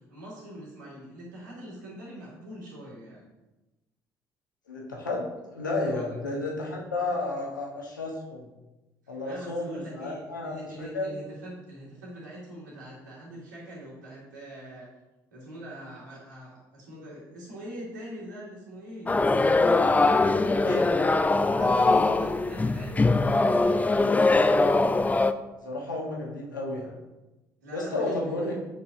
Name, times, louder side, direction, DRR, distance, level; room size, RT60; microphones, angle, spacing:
voice 1, 0.1-3.3 5.8-6.2 9.0-14.9 15.3-19.1 19.5-20.3 21.5-24.4 27.6-28.5, right 1 dB, 80° right, -6 dB, 2.1 m, -42 dB
voice 2, 4.7-8.5 9.1-11.2 20.1-21.2 25.6-26.9 27.7-28.5, left 2 dB, 85° left, -1 dB, 1.1 m, -32 dB
sound 1, 19.1-25.3, left 3 dB, 15° left, 0.4 m, -22 dB
7.8 x 5.6 x 2.7 m, 1.0 s
figure-of-eight pair, 50°, 10 cm